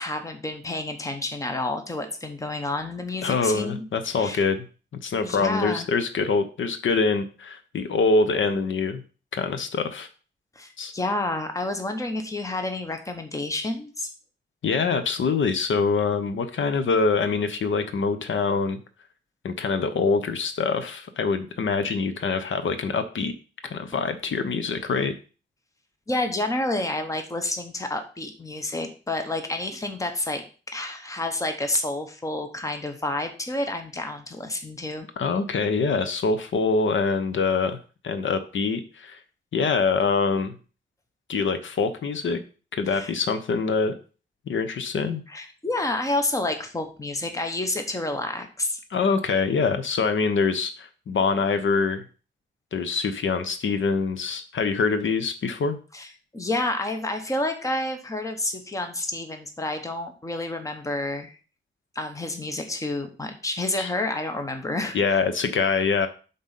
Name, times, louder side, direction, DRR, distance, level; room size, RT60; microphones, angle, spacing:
voice 1, 0.0-3.8 4.2-4.4 5.2-5.9 10.5-14.1 26.1-35.1 42.9-43.1 45.3-48.8 55.9-61.4 61.9-65.2, left 2 dB, 15° left, 6 dB, 1.0 m, -29 dB
voice 2, 3.2-4.7 5.0-9.0 9.3-10.1 10.8-10.9 14.6-18.8 19.4-23.3 23.6-25.1 35.2-37.8 38.0-39.2 39.5-40.6 41.3-42.4 42.7-43.9 44.5-45.2 48.9-52.0 52.7-55.8 63.8-63.9 64.9-66.1, left 4 dB, 80° left, 10 dB, 1.0 m, -24 dB
7.6 x 4.0 x 5.6 m, 0.36 s
wide cardioid pair, 170°, 20 cm